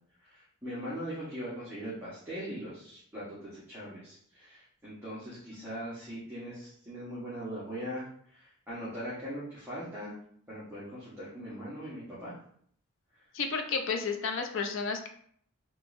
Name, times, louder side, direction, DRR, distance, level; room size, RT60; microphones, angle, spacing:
voice 1, 0.2-8.1 8.3-10.1 10.5-12.3, equal, 10° right, -11 dB, 0.9 m, -40 dB
voice 2, 13.3-15.1, left 5 dB, 55° left, 5 dB, 0.5 m, -32 dB
3.6 x 2.8 x 2.5 m, 0.63 s
head